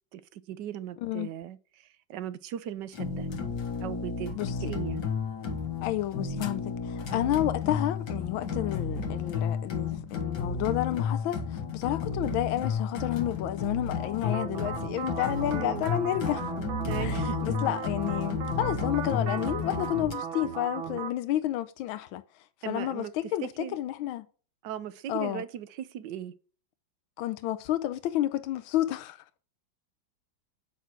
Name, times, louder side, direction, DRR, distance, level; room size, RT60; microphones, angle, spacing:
voice 1, 0.1-3.3 3.8-5.0 15.5-15.8 16.8-17.4 22.6-23.8 24.6-26.3, right 10 dB, 70° right, 1.3 m, -38 dB
sound 1, 2.9-20.1, left 5 dB, 60° left, 1.9 m, -32 dB
voice 2, 5.8-16.5 17.0-22.2 22.7-24.3 25.1-25.4 27.2-29.2, left 13 dB, 90° left, 1.4 m, -30 dB
sound 2, 14.2-21.1, right 7 dB, 85° right, 1.8 m, -36 dB
9.2 x 6.3 x 5.8 m
omnidirectional pair, 2.2 m